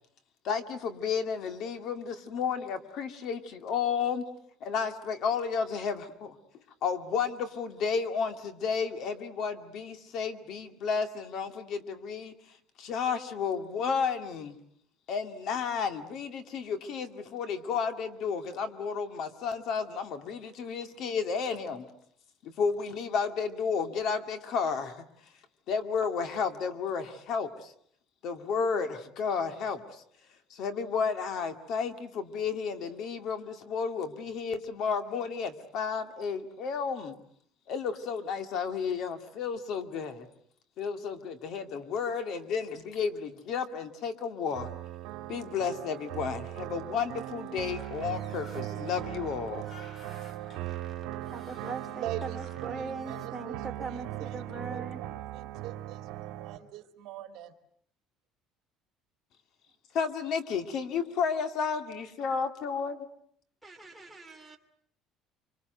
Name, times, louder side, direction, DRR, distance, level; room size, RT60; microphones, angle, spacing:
voice 1, 0.4-4.3 4.6-6.4 6.8-12.3 12.8-14.6 15.1-21.9 22.4-25.1 25.7-27.7 28.2-30.0 30.5-37.2 37.7-40.3 40.8-44.7 45.3-49.6 59.9-63.1, left 6 dB, 50° left, 8 dB, 2.3 m, -32 dB
sound 1, 44.5-56.6, right 14 dB, 75° right, 1.8 m, -39 dB
sound 2, 47.6-53.3, left 2 dB, 30° left, 3.3 m, -54 dB
voice 2, 51.3-55.0 63.6-64.6, right 4 dB, 5° right, 1 dB, 2.7 m, -40 dB
voice 3, 51.9-57.5, right 12 dB, 60° right, 7 dB, 2.8 m, -43 dB
26.5 x 25.5 x 8.0 m, 0.65 s
cardioid pair, 165°, 0 cm